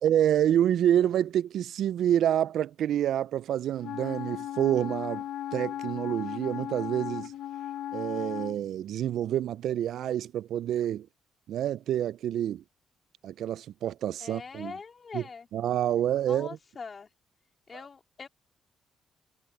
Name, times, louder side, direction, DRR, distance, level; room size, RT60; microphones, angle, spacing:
voice 1, 0.0-5.2 5.5-7.3 7.9-11.1 11.5-12.6 13.2-14.7 15.1-15.2 15.5-16.6, right 11 dB, 75° right, 0.4 m, -27 dB
Wind instrument woodwind instrument, 3.8-8.6, left 11 dB, 80° left, 1.4 m, -36 dB
voice 2, 14.2-15.5 16.2-17.1 17.7-18.3, left 5 dB, 40° left, 3.2 m, -42 dB
cardioid pair, 90°, 0 cm